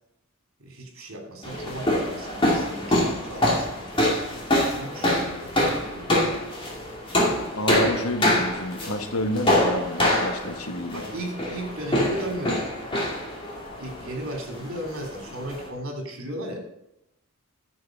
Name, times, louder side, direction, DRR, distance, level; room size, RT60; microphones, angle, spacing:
voice 1, 0.6-4.2 4.7-6.2 10.9-12.7 13.8-16.7, right 1 dB, 70° right, 1 dB, 3.1 m, -35 dB
sound 1, 1.4-15.7, left 1 dB, 25° left, 2.4 m, -25 dB
voice 2, 7.6-11.0, left 1 dB, 90° left, 7 dB, 1.3 m, -29 dB
10.5 x 6.9 x 5.2 m, 0.81 s
head